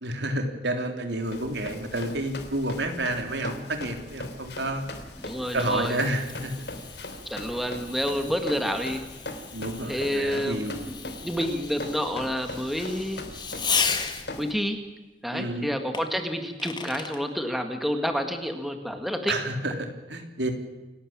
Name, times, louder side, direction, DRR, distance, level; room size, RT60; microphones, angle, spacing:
voice 1, 0.0-4.8 5.5-6.5 8.2-8.3 9.5-10.8 15.3-15.7 19.3-20.5, right 1 dB, 90° right, 5 dB, 3.5 m, -30 dB
Run, 1.2-14.5, left 2 dB, 75° left, 3.1 m, -40 dB
Fireworks, 5.1-14.5 15.9-17.2, left 6 dB, 25° left, 2.0 m, -35 dB
voice 2, 5.2-6.0 7.3-9.1 9.9-13.2 14.4-14.8 15.2-19.3, equal, ahead, 6 dB, 1.9 m, -29 dB
28.5 x 12.5 x 8.8 m, 1.2 s
head